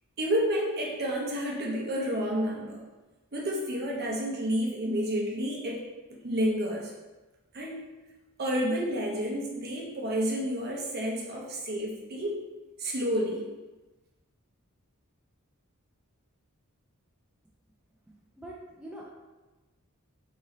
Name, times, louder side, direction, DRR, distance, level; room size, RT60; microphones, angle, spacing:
voice 1, 0.2-2.8 3.3-5.8 6.2-6.9 7.5-7.8 8.4-12.4 12.8-13.5, equal, 45° right, -2 dB, 0.7 m, -30 dB
voice 2, 18.4-19.0, right 1 dB, 5° right, -5 dB, 0.3 m, -43 dB
3.0 x 2.7 x 3.8 m, 1.2 s
head